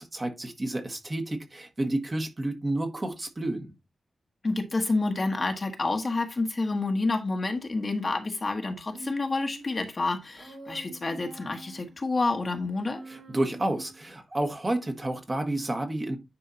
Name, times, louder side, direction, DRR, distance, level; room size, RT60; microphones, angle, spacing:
voice 1, 0.0-3.7 13.1-16.2, right 1 dB, 25° right, 1.5 m, -30 dB
voice 2, 4.4-13.0, left 3 dB, 35° left, 1.3 m, -29 dB
Human voice, 8.9-9.8 10.4-11.9 12.8-14.1, right 1 dB, 65° right, 2.7 m, -44 dB
10.0 x 4.6 x 2.8 m
wide cardioid pair, 120°, 0 cm